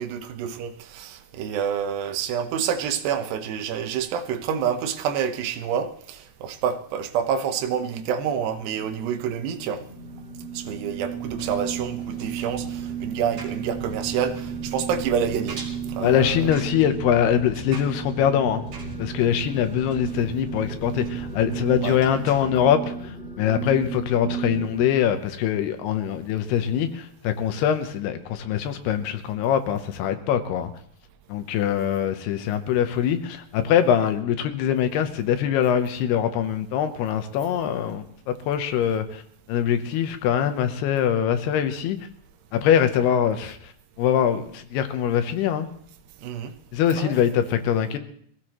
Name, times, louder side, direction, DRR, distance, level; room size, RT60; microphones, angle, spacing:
voice 1, 0.0-9.8 10.5-15.6 15.9-16.5 21.8-22.0 46.2-46.5 46.9-47.2, right 8 dB, 80° right, 3.0 m, -28 dB
sound 1, 7.6-24.9, right 6 dB, ahead, 2.9 m, -34 dB
Engine, 11.1-22.7, right 3 dB, 40° right, 2.5 m, -40 dB
voice 2, 16.0-18.6 19.0-30.7 31.3-39.2 39.5-42.0 42.5-43.6 44.0-45.7 46.7-48.0, left 9 dB, 75° left, 2.8 m, -23 dB
23.0 x 16.0 x 3.0 m
omnidirectional pair, 4.9 m